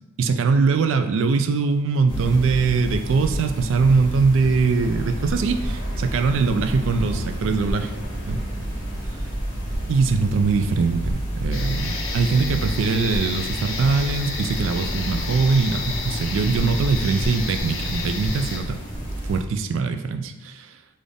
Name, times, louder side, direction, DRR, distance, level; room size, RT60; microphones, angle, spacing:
voice 1, 0.2-7.9 8.3-8.4 9.9-18.8 19.3-20.7, right 4 dB, 65° right, 7 dB, 0.3 m, -22 dB
sound 1, 2.1-19.4, equal, 20° left, 1.0 m, -30 dB
sound 2, 11.5-18.6, left 4 dB, 75° left, 0.6 m, -32 dB
4.0 x 2.4 x 3.3 m, 0.97 s
head